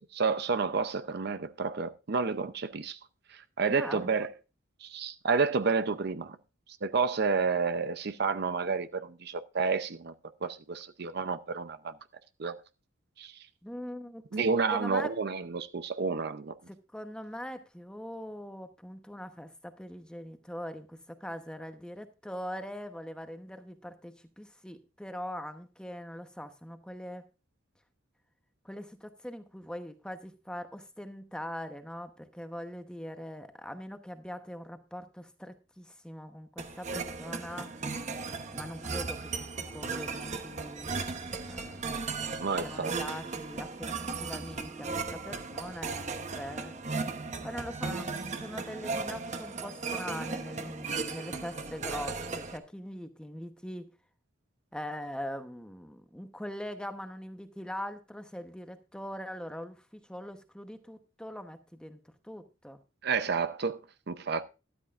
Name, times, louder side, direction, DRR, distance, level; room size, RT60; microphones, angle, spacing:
voice 1, 0.2-3.0 3.3-4.3 4.8-6.4 6.8-10.1 10.4-11.9 12.4-12.6 13.2-13.3 14.3-16.5 42.4-43.0 63.0-63.8 64.1-64.4, right 5 dB, 50° right, 0.6 m, -30 dB
voice 2, 3.7-4.1 13.6-14.4 14.7-15.1 16.7-27.2 28.6-37.7 38.5-39.5 39.7-41.1 41.4-42.0 42.6-43.9 44.2-46.8 47.4-53.9 54.7-62.0 62.2-62.8, equal, 5° left, 0.9 m, -42 dB
sound 1, 36.6-52.6, right 4 dB, 35° right, 1.0 m, -36 dB
12.5 x 12.5 x 2.5 m
head